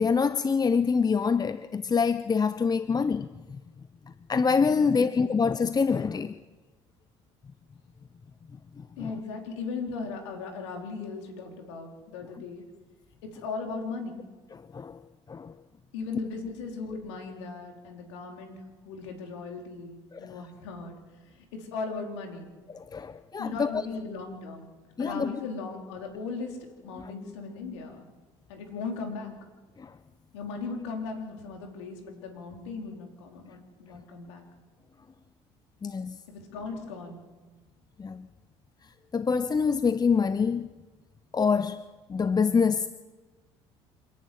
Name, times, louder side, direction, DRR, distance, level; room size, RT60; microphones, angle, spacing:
voice 1, 0.0-3.3 4.3-6.3 9.0-9.1 14.7-15.0 15.3-15.5 20.1-20.3 22.7-23.8 25.0-25.3 29.8-29.9 35.8-36.2 38.0-38.3 39.1-40.7 41.3-41.8 42.1-42.9, left 5 dB, 25° left, 0.9 m, -25 dB
voice 2, 4.8-5.4 9.0-12.7 13.2-14.3 15.9-20.9 21.3-22.5 23.4-24.7 25.0-28.1 28.5-29.3 30.3-34.4 36.3-37.2, left 4 dB, 85° left, 4.3 m, -38 dB
27.0 x 11.0 x 9.4 m
hypercardioid pair, 70°, 14 cm